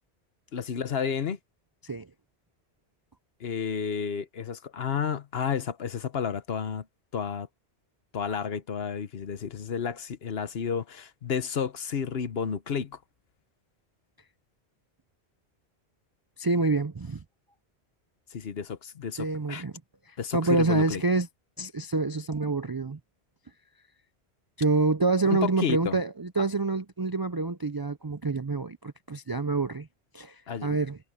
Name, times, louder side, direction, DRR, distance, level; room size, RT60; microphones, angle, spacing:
voice 1, 0.5-1.4 3.4-6.9 7.1-7.5 8.1-13.0 18.3-19.6 20.2-21.0 25.3-26.0 30.5-30.8, left 7 dB, 65° left, 1.2 m, -31 dB
voice 2, 16.4-17.2 19.2-19.7 20.1-21.3 21.6-23.0 24.6-29.9 30.1-31.0, right 3 dB, 35° right, 0.4 m, -27 dB
omnidirectional pair, 1.1 m